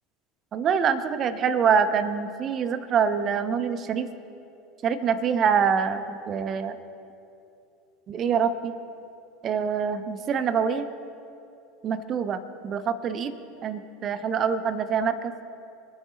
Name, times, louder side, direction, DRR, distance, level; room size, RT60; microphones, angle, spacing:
voice 1, 0.5-4.1 4.8-6.7 8.1-8.7 9.4-10.9 11.8-13.3 13.6-15.3, right 6 dB, 35° right, 11 dB, 1.0 m, -25 dB
25.5 x 9.6 x 4.0 m, 2.7 s
figure-of-eight pair, 70°, 0 cm